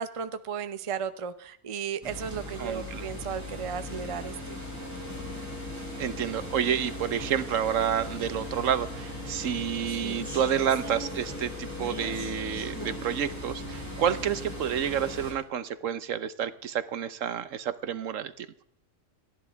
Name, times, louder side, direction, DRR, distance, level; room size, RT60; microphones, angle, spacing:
voice 1, 0.0-4.6, right 7 dB, 30° right, 11 dB, 0.7 m, -35 dB
sound 1, 2.0-15.3, left 1 dB, 10° left, 6.1 m, -38 dB
voice 2, 2.6-3.0 6.0-18.5, right 9 dB, 70° right, 14 dB, 1.1 m, -29 dB
29.5 x 11.0 x 3.5 m, 0.73 s
omnidirectional pair, 1.4 m